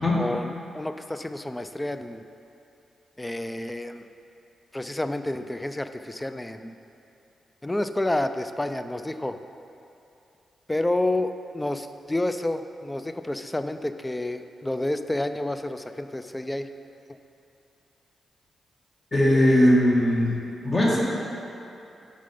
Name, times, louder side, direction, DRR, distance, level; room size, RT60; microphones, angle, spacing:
voice 1, 0.2-2.2 3.2-4.0 4.7-6.8 7.6-9.4 10.7-16.7, left 1 dB, 15° left, 9 dB, 0.4 m, -29 dB
voice 2, 19.1-20.3 20.6-21.0, left 1 dB, 35° left, -4 dB, 1.8 m, -19 dB
6.6 x 5.1 x 5.2 m, 2.8 s
cardioid pair, 65°, 0 cm